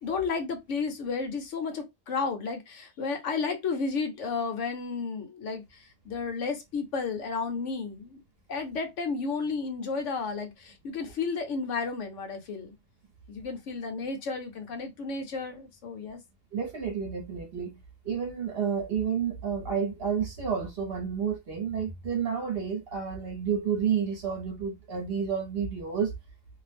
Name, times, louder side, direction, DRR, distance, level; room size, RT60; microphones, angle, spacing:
voice 1, 0.0-8.2 8.5-12.7 13.3-16.2, left 4 dB, 70° left, 1.0 m, -32 dB
voice 2, 16.5-17.8 18.0-26.1, right 7 dB, 50° right, 0.9 m, -30 dB
2.6 x 2.1 x 3.3 m
omnidirectional pair, 1.4 m